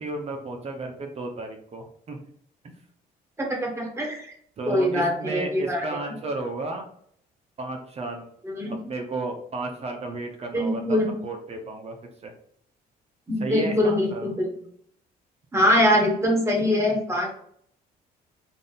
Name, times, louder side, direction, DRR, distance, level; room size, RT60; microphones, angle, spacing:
voice 1, 0.0-2.2 4.6-6.8 7.6-8.2 8.7-12.0 12.2-12.3 13.4-14.3, right 2 dB, 40° right, 3 dB, 0.7 m, -33 dB
voice 2, 3.5-4.3 4.6-5.9 8.4-8.8 10.5-11.1 13.3-14.4 15.5-17.3, left 1 dB, 15° right, -1 dB, 1.5 m, -23 dB
3.7 x 2.5 x 3.9 m, 0.65 s
cardioid pair, 110°, 17 cm